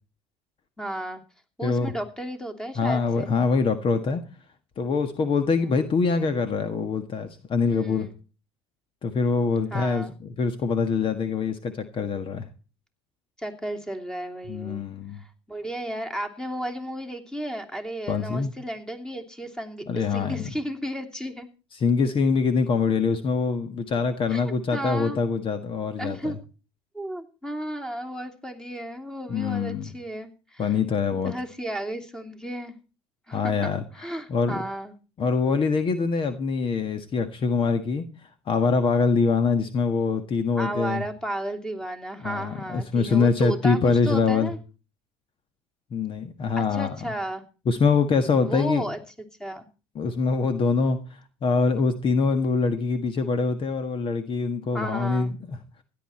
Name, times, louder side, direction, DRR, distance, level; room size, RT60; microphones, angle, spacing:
voice 1, 0.8-1.2 1.6-3.3 5.5-5.8 7.7-8.1 9.7-10.1 13.4-14.8 15.1-21.5 24.3-25.2 26.0-26.3 26.9-30.8 31.2-32.7 33.3-34.9 40.5-44.6 46.6-47.4 48.4-49.0 49.4-49.7 54.7-55.3, right 1 dB, 5° left, 5 dB, 2.9 m, -33 dB
voice 2, 2.7-4.2 4.8-8.1 9.0-12.4 14.5-15.2 18.1-18.5 19.9-20.5 21.7-26.3 29.3-29.9 30.6-31.3 33.3-33.8 34.3-34.6 35.2-38.0 38.5-41.0 42.2-44.5 45.9-47.0 47.6-48.9 49.9-51.0 51.4-55.6, left 4 dB, 40° left, 9 dB, 1.6 m, -24 dB
16.5 x 11.0 x 4.4 m, 0.34 s
hypercardioid pair, 75°, 13 cm